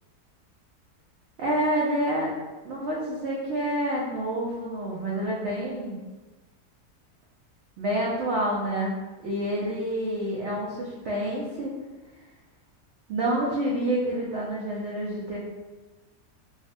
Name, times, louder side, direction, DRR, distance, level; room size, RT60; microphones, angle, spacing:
voice 1, 1.4-2.3 2.6-6.0 7.8-9.0 9.2-11.7 13.1-15.4, right 1 dB, 70° right, -4 dB, 0.6 m, -28 dB
3.6 x 2.1 x 2.5 m, 1.2 s
omnidirectional pair, 1.6 m